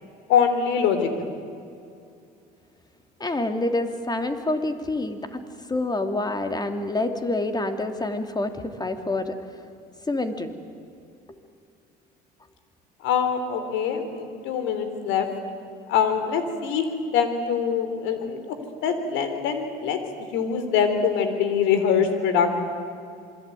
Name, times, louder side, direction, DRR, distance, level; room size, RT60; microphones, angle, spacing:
voice 1, 0.3-1.3 13.0-15.3 15.9-16.9 17.1-18.4 18.8-20.0 20.3-22.6, left 7 dB, 70° left, 8 dB, 3.8 m, -23 dB
voice 2, 3.2-5.4 5.7-9.4 10.1-10.5, left 2 dB, 20° left, 7 dB, 3.2 m, -27 dB
27.0 x 22.5 x 9.5 m, 2.5 s
hypercardioid pair, 65°, 20 cm